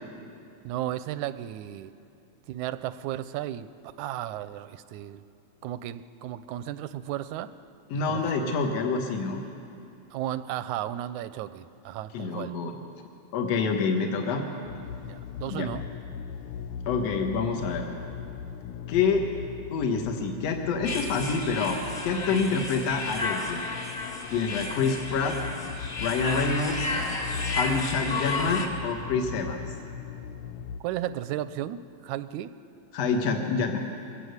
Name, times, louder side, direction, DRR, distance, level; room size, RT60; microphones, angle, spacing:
voice 1, 0.6-1.9 2.5-3.7 4.0-5.2 5.6-7.5 7.9-8.6 10.1-12.5 15.0-15.8 30.8-32.5, right 12 dB, 85° right, 14 dB, 2.1 m, -34 dB
voice 2, 7.9-9.4 12.1-12.8 13.3-14.4 15.5-15.7 16.9-17.9 18.9-19.3 19.7-23.6 24.3-25.4 26.0-26.9 27.5-29.6 32.9-33.8, left 4 dB, 65° left, 3 dB, 2.4 m, -27 dB
sound 1, 14.6-30.8, left 7 dB, 80° left, 1.3 m, -39 dB
sound 2, 20.8-28.7, left 2 dB, 30° left, 2.0 m, -33 dB
23.5 x 17.0 x 8.1 m, 2.6 s
omnidirectional pair, 3.3 m